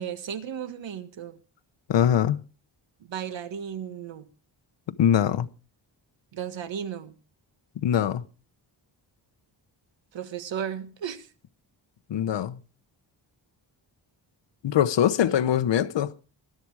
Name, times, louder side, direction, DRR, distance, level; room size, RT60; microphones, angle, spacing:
voice 1, 0.0-1.4 3.0-4.3 6.3-7.1 10.1-11.3 15.2-15.4, right 8 dB, 80° right, 1.6 m, -35 dB
voice 2, 1.9-2.4 5.0-5.5 7.8-8.2 12.1-12.6 14.6-16.1, left 10 dB, 70° left, 1.0 m, -22 dB
21.0 x 12.0 x 4.8 m
wide cardioid pair, 125°, 45 cm